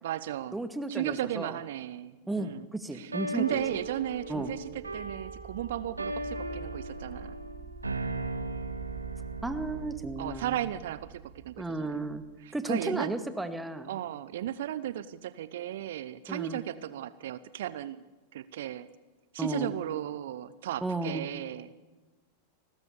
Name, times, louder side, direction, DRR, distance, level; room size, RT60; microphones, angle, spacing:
voice 1, 0.0-0.6 0.9-2.7 2.9-7.4 10.2-12.0 12.4-13.1 13.9-18.0 18.3-18.9 19.3-21.7, right 12 dB, 55° right, 16 dB, 0.9 m, -35 dB
voice 2, 0.5-1.6 2.3-3.6 4.3-4.5 9.4-10.6 11.6-12.2 12.5-13.9 16.3-16.6 19.4-19.7 20.8-21.3, right 2 dB, 5° right, 9 dB, 2.0 m, -34 dB
sound 1, 3.1-10.1, right 2 dB, 80° right, 1.8 m, -37 dB
sound 2, 3.5-12.3, right 6 dB, 35° right, 3.5 m, -46 dB
29.5 x 20.0 x 7.1 m, 1.2 s
figure-of-eight pair, 90°, 0 cm